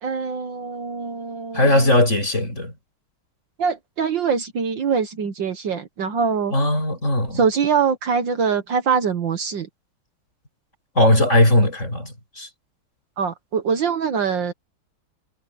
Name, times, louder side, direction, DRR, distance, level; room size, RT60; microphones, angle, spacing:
voice 1, 0.0-1.9 3.6-6.5 7.3-9.7 13.2-14.5, right 6 dB, 60° right, 1.9 m, -23 dB
voice 2, 1.5-2.7 6.5-7.4 11.0-12.5, left 1 dB, 35° left, 7.6 m, -18 dB
omnidirectional pair, 2.3 m